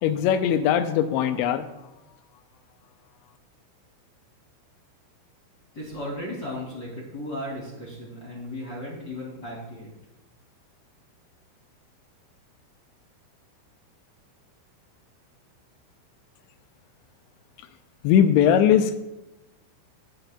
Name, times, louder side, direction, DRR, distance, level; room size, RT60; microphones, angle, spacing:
voice 1, 0.0-1.7 17.6-17.7 18.0-19.0, left 9 dB, 85° left, 9 dB, 2.6 m, -20 dB
voice 2, 5.7-9.9, left 1 dB, 30° left, -4 dB, 1.9 m, -35 dB
18.0 x 8.9 x 2.3 m, 0.92 s
omnidirectional pair, 5.6 m